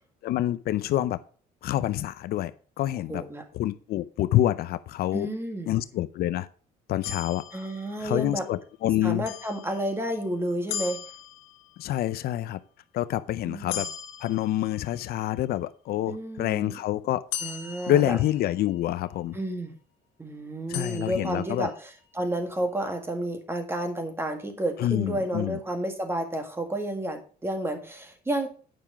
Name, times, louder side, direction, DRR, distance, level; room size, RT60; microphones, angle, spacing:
voice 1, 0.2-1.2 1.6-2.5 2.8-3.2 3.5-5.3 5.7-6.5 6.9-7.4 8.0-9.3 11.8-12.6 12.9-13.9 14.2-17.2 17.9-19.4 20.7-21.7 24.8-25.6, left 13 dB, 65° left, 14 dB, 0.5 m, -27 dB
voice 2, 3.1-3.4 5.1-5.8 7.5-8.5 9.0-11.0 13.4-13.8 16.1-16.7 17.4-18.2 19.3-19.8 20.2-28.5, right 1 dB, 15° right, 6 dB, 1.9 m, -31 dB
sound 1, 7.0-8.4 9.3-10.2 10.7-11.9 13.7-15.2 17.3-18.9 20.7-21.9, left 9 dB, 85° left, 1.7 m, -38 dB
9.4 x 5.8 x 5.0 m, 0.41 s
cardioid pair, 110°, 17 cm